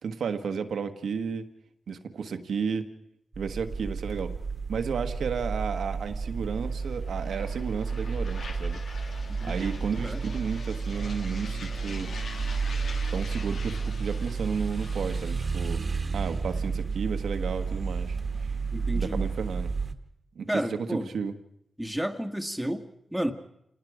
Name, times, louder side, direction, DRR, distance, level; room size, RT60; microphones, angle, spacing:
voice 1, 0.0-1.5 1.9-2.9 3.4-4.4 4.7-9.2 9.4-12.1 13.1-15.8 16.1-18.2 18.9-19.7 20.3-21.3, right 6 dB, 85° right, 7 dB, 1.4 m, -33 dB
sound 1, 3.3-19.9, right 5 dB, 45° right, 1.5 m, -31 dB
sound 2, 4.7-19.6, left 3 dB, 70° left, 2.1 m, -46 dB
voice 2, 18.7-19.2 20.5-21.1 21.8-22.9 23.1-23.3, equal, 5° right, 5 dB, 1.7 m, -31 dB
28.0 x 19.0 x 5.0 m, 0.77 s
wide cardioid pair, 95°, 0 cm